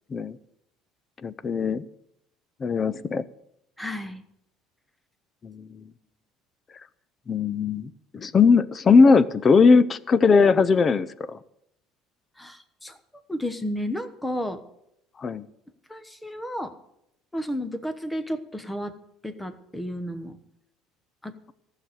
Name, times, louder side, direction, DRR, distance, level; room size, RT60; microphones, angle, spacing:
voice 1, 1.2-1.8 2.6-3.2 5.4-5.8 7.3-11.4 15.2-15.4, left 5 dB, 25° left, 18 dB, 0.6 m, -19 dB
voice 2, 3.8-4.2 12.4-13.0 13.3-14.6 15.9-16.7 17.3-18.9 19.2-20.4 21.2-21.3, equal, 5° left, 11 dB, 1.0 m, -32 dB
15.0 x 6.7 x 9.2 m, 0.78 s
cardioid pair, 140°, 0 cm